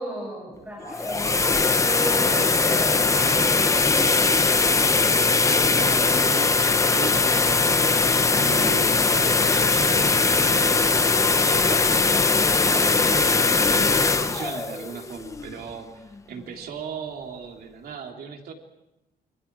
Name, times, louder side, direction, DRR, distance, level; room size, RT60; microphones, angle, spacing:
voice 1, 0.0-5.3, right 1 dB, 10° right, -1 dB, 7.1 m, -34 dB
sound 1, 0.8-15.7, left 4 dB, 20° left, 0.8 m, -20 dB
voice 2, 2.1-2.5 5.7-12.0 12.7-18.5, right 6 dB, 90° right, 2 dB, 3.5 m, -37 dB
28.5 x 25.5 x 4.8 m, 0.94 s
wide cardioid pair, 160°, 15 cm